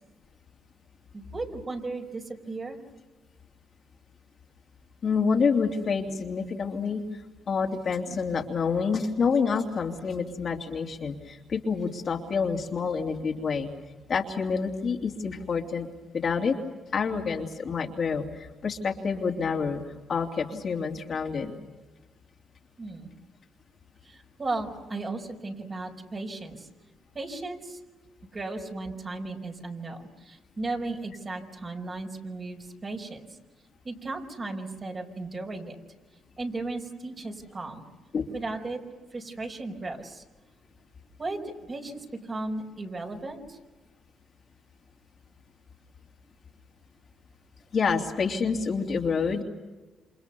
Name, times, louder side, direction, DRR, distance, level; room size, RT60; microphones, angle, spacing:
voice 1, 1.1-2.8 22.8-23.1 24.0-26.7 27.1-27.8 28.3-33.3 33.8-35.8 36.4-37.8 38.3-38.8 39.1-40.2 41.2-43.6, right 2 dB, 35° right, 3 dB, 5.1 m, -35 dB
voice 2, 5.0-7.2 7.5-13.7 14.1-15.9 16.1-16.6 16.9-19.8 20.1-21.5 38.1-38.3 47.7-49.4, left 5 dB, 50° left, 2 dB, 3.0 m, -28 dB
28.5 x 27.0 x 7.0 m, 1.2 s
cardioid pair, 90°, 0 cm